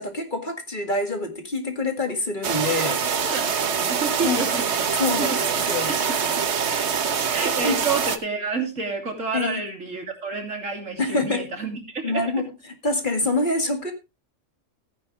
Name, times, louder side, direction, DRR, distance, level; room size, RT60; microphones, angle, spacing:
voice 1, 0.0-3.0 4.2-4.5 5.0-5.9 7.6-7.8 9.3-9.6 11.0-11.5 12.0-12.5 12.8-13.9, left 2 dB, 40° left, 2.1 m, -26 dB
sound 1, 2.4-8.2, right 6 dB, 65° right, 1.3 m, -24 dB
voice 2, 3.2-4.9 5.2-5.5 5.8-6.4 6.7-12.2, right 4 dB, 85° right, 3.4 m, -30 dB
16.0 x 9.6 x 3.2 m
omnidirectional pair, 1.3 m